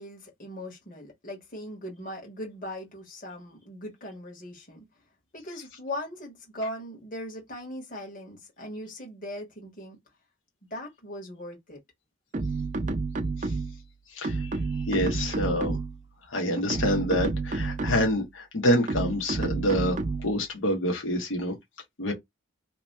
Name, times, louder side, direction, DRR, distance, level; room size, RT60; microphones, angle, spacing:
voice 1, 0.0-4.8 5.3-10.0 10.7-11.8, left 1 dB, 45° left, 1.4 m, -39 dB
sound 1, 12.3-13.9 14.2-16.0 16.6-18.2 18.9-20.4, right 3 dB, 40° right, 0.5 m, -30 dB
voice 2, 14.1-15.8 16.2-21.5 22.0-22.1, equal, 85° left, 1.0 m, -27 dB
2.9 x 2.2 x 4.0 m
head